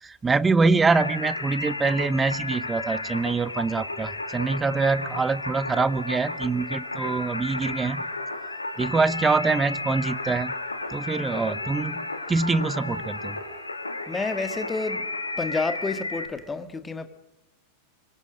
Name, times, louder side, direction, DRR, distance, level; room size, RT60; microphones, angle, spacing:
voice 1, 0.0-8.0 8.8-10.5 10.9-13.4, right 4 dB, 15° right, 0.9 m, -24 dB
Singing, 0.8-16.3, left 2 dB, 80° left, 2.2 m, -33 dB
sound 1, 7.0-13.7, right 3 dB, 75° right, 6.2 m, -52 dB
voice 2, 14.1-15.0 15.4-17.1, left 3 dB, 15° left, 1.6 m, -29 dB
25.0 x 22.5 x 5.1 m
figure-of-eight pair, 90°, 0 cm